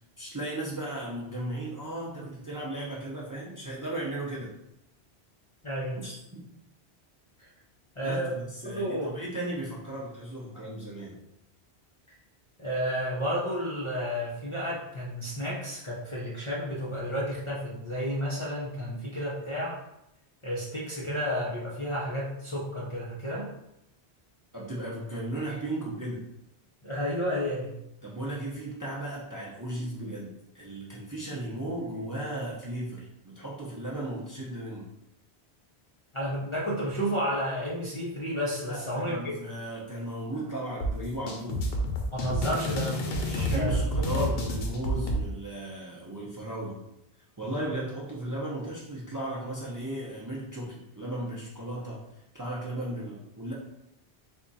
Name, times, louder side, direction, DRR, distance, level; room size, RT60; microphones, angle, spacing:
voice 1, 0.2-4.5 6.0-6.5 8.0-11.2 24.5-26.3 28.0-34.9 38.6-41.6 43.3-46.8 47.4-52.0 52.3-53.5, right 1 dB, 20° right, -5 dB, 0.7 m, -36 dB
voice 2, 5.6-6.0 8.0-8.3 8.6-9.2 12.6-19.8 20.4-23.5 26.8-27.7 36.1-39.3 42.1-43.8 44.1-44.3, equal, 35° left, -6 dB, 0.6 m, -31 dB
sound 1, 40.8-45.2, equal, 65° left, 0.8 m, -29 dB
3.6 x 2.4 x 4.0 m, 0.83 s
omnidirectional pair, 1.1 m